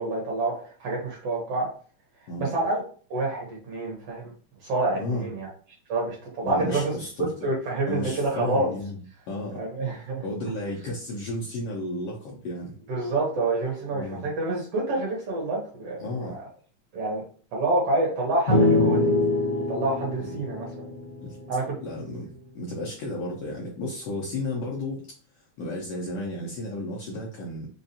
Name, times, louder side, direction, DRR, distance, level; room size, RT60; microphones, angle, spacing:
voice 1, 0.0-1.7 2.4-2.8 3.1-4.3 4.6-5.5 5.9-6.9 7.4-8.7 9.5-10.2 12.9-16.5 16.9-17.2 17.5-19.2 19.7-20.9 21.5-21.7, right 2 dB, 60° right, -2 dB, 1.8 m, -27 dB
voice 2, 6.4-7.3 7.9-9.0 9.3-9.6 10.2-12.7 13.9-14.2 16.0-16.4 20.2-20.3 21.2-21.4 21.8-22.3 22.5-25.0 25.6-27.7, left 1 dB, 75° left, -2 dB, 1.4 m, -33 dB
sound 1, 18.5-22.0, left 2 dB, 40° left, 0.8 m, -24 dB
5.1 x 2.4 x 2.7 m, 0.42 s
omnidirectional pair, 3.3 m